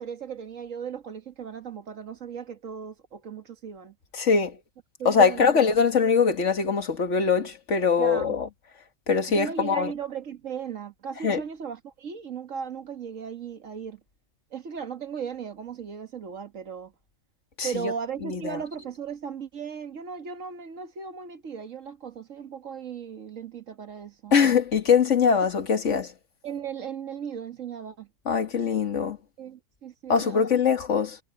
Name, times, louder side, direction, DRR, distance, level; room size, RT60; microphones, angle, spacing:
voice 1, 0.0-3.9 5.0-5.5 8.0-8.4 9.3-14.0 14.5-16.9 17.6-24.3 26.4-28.1 29.4-30.6, right 7 dB, 90° right, 1.9 m, -36 dB
voice 2, 4.1-4.6 5.1-8.5 9.1-9.9 11.2-11.4 17.6-17.9 18.2-18.6 24.3-26.1 28.3-29.2 30.1-31.2, left 6 dB, 70° left, 2.0 m, -22 dB
omnidirectional pair, 1.3 m